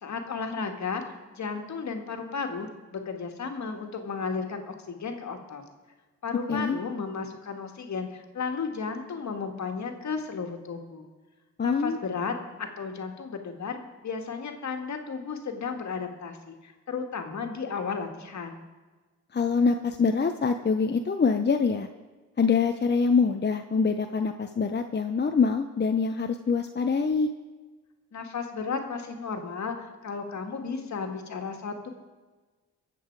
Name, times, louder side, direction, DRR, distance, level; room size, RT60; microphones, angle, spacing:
voice 1, 0.0-1.0 1.3-5.6 6.2-11.1 11.6-18.6 28.1-31.9, left 5 dB, 60° left, 4 dB, 2.0 m, -34 dB
voice 2, 11.6-12.0 19.3-21.9 22.4-27.3, left 5 dB, 30° left, 6 dB, 0.9 m, -24 dB
23.0 x 7.9 x 4.7 m, 1.3 s
supercardioid pair, 50°, 32 cm